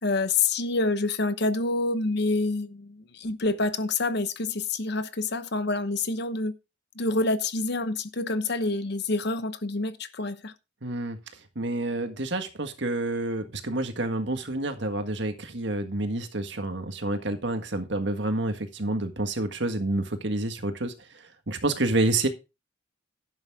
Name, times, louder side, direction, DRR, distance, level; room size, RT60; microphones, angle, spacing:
voice 1, 0.0-6.5 6.9-10.5, left 3 dB, 55° left, 1.0 m, -27 dB
voice 2, 10.8-11.2 11.5-20.9 21.5-22.3, right 2 dB, 60° right, 1.7 m, -28 dB
11.5 x 8.5 x 3.6 m
head